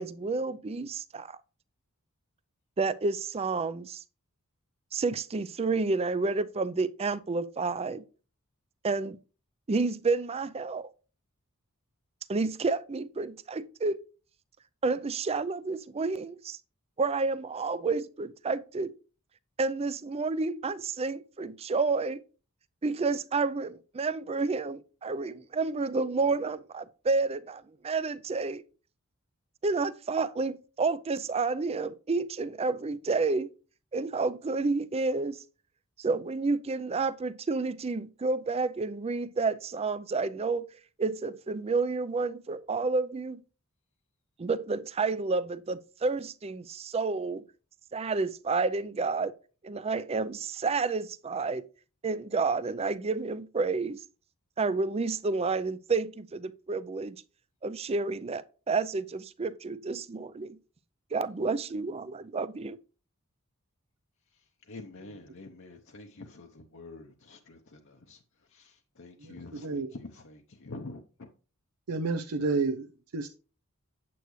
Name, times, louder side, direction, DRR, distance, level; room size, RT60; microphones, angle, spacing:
voice 1, 0.0-1.4 2.8-4.0 4.9-8.0 8.8-9.2 9.7-10.9 12.3-14.0 14.8-16.6 17.0-18.9 19.6-22.2 22.8-28.6 29.6-33.5 33.9-35.4 36.0-40.7 41.0-43.4 44.4-47.4 47.9-49.3 49.6-51.6 52.0-54.0 54.6-57.2 57.6-60.6 61.1-62.8, right 4 dB, 25° right, 0.4 m, -30 dB
voice 2, 64.7-68.2 68.5-71.3, left 2 dB, 60° left, 0.8 m, -47 dB
voice 3, 69.2-69.9 71.9-73.3, right 3 dB, 80° right, 0.6 m, -31 dB
8.5 x 8.0 x 3.1 m
head